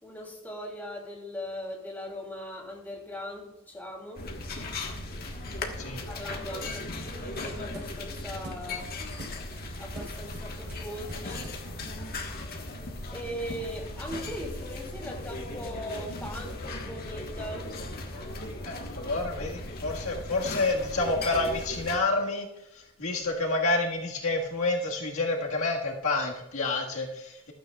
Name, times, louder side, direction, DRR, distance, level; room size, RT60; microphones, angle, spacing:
voice 1, 0.0-4.2 6.1-8.9 9.8-11.5 13.1-17.7, equal, 10° left, -1 dB, 3.0 m, -39 dB
sound 1, 4.1-22.0, left 2 dB, 45° left, 1.4 m, -37 dB
sound 2, 7.3-12.4, right 1 dB, 65° right, 4.0 m, -47 dB
voice 2, 18.7-22.5 22.7-27.5, left 2 dB, 70° left, -1 dB, 1.7 m, -29 dB
15.0 x 12.5 x 2.4 m, 0.92 s
head